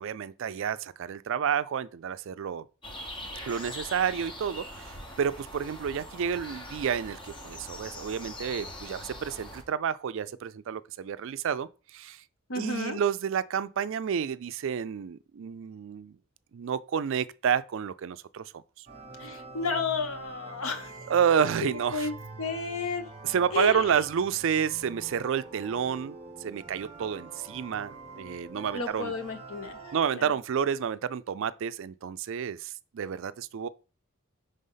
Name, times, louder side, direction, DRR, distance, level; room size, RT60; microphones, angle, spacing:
voice 1, 0.0-2.7 3.5-12.2 12.6-16.2 16.5-18.5 18.8-18.9 21.1-22.1 23.2-29.1 29.9-33.7, right 7 dB, 60° right, 0.4 m, -30 dB
sound 1, 2.8-9.6, left 1 dB, 25° left, 1.1 m, -42 dB
voice 2, 12.5-13.0 19.2-21.0 21.6-22.1 22.4-23.1 23.5-24.0 28.7-29.8 30.1-30.3, left 4 dB, 75° left, 1.0 m, -32 dB
sound 2, 18.9-30.0, right 3 dB, 30° right, 1.0 m, -45 dB
5.4 x 3.4 x 5.5 m
head